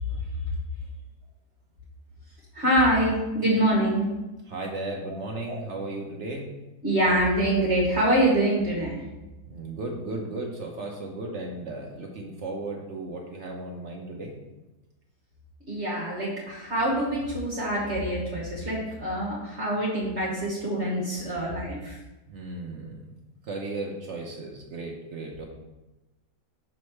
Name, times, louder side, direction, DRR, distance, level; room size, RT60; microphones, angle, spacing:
voice 1, 2.5-4.1 5.0-5.1 5.4-5.6 6.8-9.0 15.7-22.0 25.4-25.5, right 1 dB, 40° right, -6 dB, 1.3 m, -25 dB
voice 2, 4.5-6.5 9.5-14.3 22.3-23.1 23.4-25.5, right 2 dB, 60° right, 0 dB, 0.8 m, -35 dB
6.2 x 3.2 x 5.7 m, 1.1 s
omnidirectional pair, 2.0 m